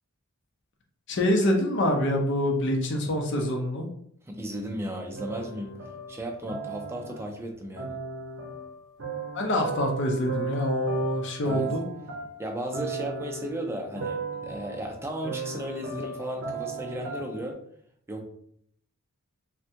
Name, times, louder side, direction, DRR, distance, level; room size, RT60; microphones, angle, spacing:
voice 1, 1.1-3.9 9.3-11.8, left 1 dB, 55° left, 3 dB, 0.6 m, -25 dB
voice 2, 4.3-8.0 11.4-11.8 12.4-17.6 18.1-18.3, right 1 dB, 10° right, 1 dB, 0.4 m, -35 dB
sound 1, 5.1-7.4 7.8-17.5, right 3 dB, 55° right, 0.6 m, -36 dB
3.4 x 2.2 x 2.8 m, 0.66 s
head